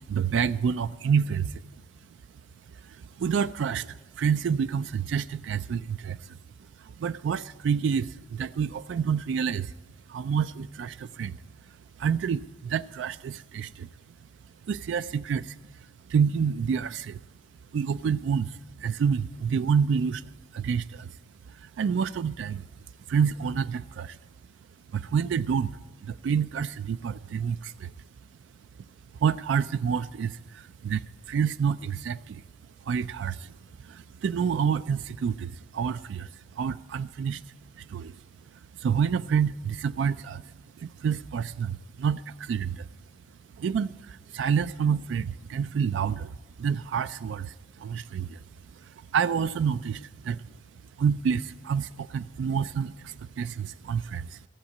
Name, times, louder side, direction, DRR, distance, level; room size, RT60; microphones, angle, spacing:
voice 1, 0.1-1.6 2.7-6.4 6.8-9.7 10.1-11.4 11.7-13.9 14.6-15.8 16.1-17.2 17.7-21.2 21.5-22.7 23.1-24.2 24.9-27.9 29.1-32.4 32.8-33.5 33.8-37.4 37.7-38.2 38.5-42.9 43.6-48.4 48.7-50.4 51.0-54.5, right 7 dB, 85° right, 14 dB, 0.3 m, -28 dB
15.0 x 7.3 x 8.3 m, 1.3 s
head